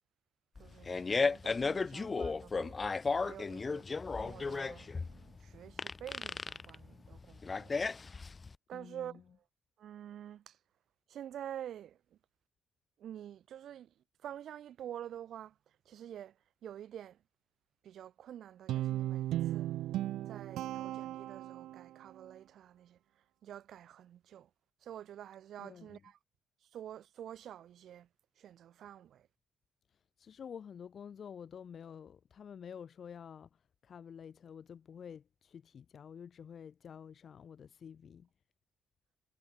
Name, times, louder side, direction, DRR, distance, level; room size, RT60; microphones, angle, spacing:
Fart, 0.6-8.5, left 4 dB, 30° left, 0.6 m, -34 dB
voice 1, 0.6-3.9 4.2-7.7 8.7-9.2 9.8-10.6 11.1-12.0 13.0-13.9 14.2-15.6 15.9-16.4 16.6-17.2 17.8-19.7 20.3-23.0 23.4-24.5 24.8-26.2 26.7-28.1 28.4-29.3, right 10 dB, 70° right, 3.8 m, -48 dB
voice 2, 8.7-9.4 25.6-26.1 30.2-38.3, left 7 dB, 55° left, 3.3 m, -50 dB
Guitar, 18.7-22.0, right 14 dB, 85° right, 0.7 m, -36 dB
cardioid pair, 90°, 0 cm